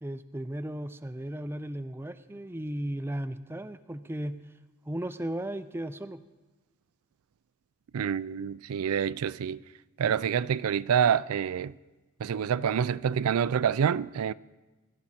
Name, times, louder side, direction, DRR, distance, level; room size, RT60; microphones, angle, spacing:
voice 1, 0.0-4.4 4.9-6.2, right 1 dB, 10° right, 0.4 m, -35 dB
voice 2, 7.9-9.6 10.0-11.7 12.2-14.3, right 8 dB, 85° right, 0.4 m, -27 dB
22.0 x 12.0 x 4.3 m
head